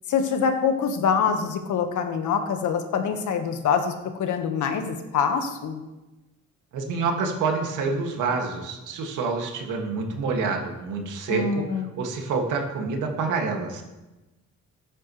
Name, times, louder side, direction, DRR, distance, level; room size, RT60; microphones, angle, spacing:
voice 1, 0.1-5.8 11.3-11.9, left 6 dB, 80° left, 6 dB, 1.4 m, -25 dB
voice 2, 6.7-11.7 12.0-13.8, right 4 dB, 85° right, 2 dB, 2.1 m, -27 dB
14.5 x 10.0 x 3.2 m, 1.0 s
cardioid pair, 90°, 30 cm